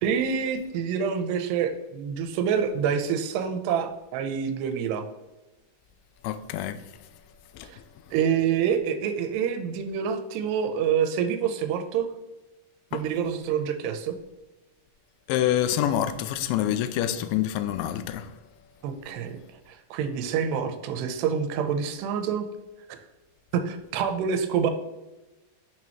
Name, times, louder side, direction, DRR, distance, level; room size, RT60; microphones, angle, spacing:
voice 1, 0.0-5.0 7.7-7.8 8.1-12.1 12.9-14.2 18.8-19.4 19.7-22.5 23.5-24.7, right 7 dB, 80° right, 2.7 m, -27 dB
voice 2, 6.2-6.8 7.6-7.7 12.9-13.0 15.3-18.3, left 11 dB, 90° left, 3.0 m, -26 dB
10.5 x 6.3 x 3.0 m
omnidirectional pair, 5.1 m